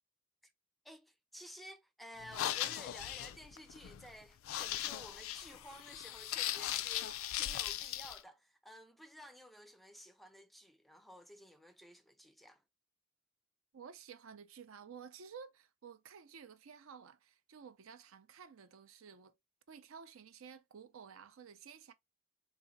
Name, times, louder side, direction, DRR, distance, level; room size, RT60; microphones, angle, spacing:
voice 1, 0.8-12.6, equal, ahead, 0.3 m, -54 dB
sound 1, 2.2-8.2, left 12 dB, 80° left, 0.3 m, -39 dB
voice 2, 13.7-19.3 19.7-21.9, right 6 dB, 85° right, 0.5 m, -53 dB
4.0 x 2.4 x 2.6 m
head